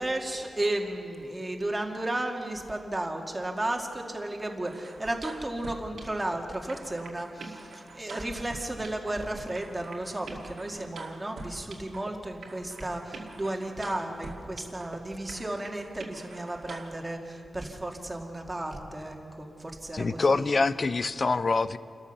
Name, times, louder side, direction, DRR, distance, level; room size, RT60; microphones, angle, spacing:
voice 1, 0.0-20.6, right 1 dB, 15° right, 2 dB, 2.1 m, -34 dB
sound 1, 4.6-6.4 6.7-9.2 9.5-12.1 12.4-15.0 15.3-17.0, right 4 dB, 80° right, 2.1 m, -44 dB
voice 2, 19.9-21.8, left 3 dB, 40° left, 15 dB, 0.6 m, -25 dB
28.5 x 13.5 x 6.8 m, 2.7 s
wide cardioid pair, 115°, 0 cm